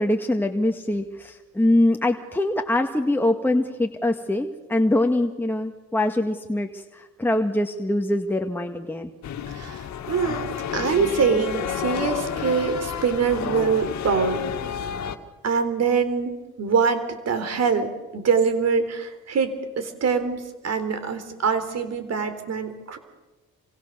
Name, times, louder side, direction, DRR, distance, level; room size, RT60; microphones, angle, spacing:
voice 1, 0.0-9.1, left 1 dB, 5° left, 3 dB, 1.8 m, -23 dB
sound 1, 9.2-15.2, left 8 dB, 65° left, 2.0 m, -30 dB
voice 2, 9.5-14.4 15.4-23.0, right 6 dB, 60° right, 10 dB, 3.9 m, -24 dB
28.0 x 25.0 x 6.8 m, 1.2 s
cardioid pair, 90°, 30 cm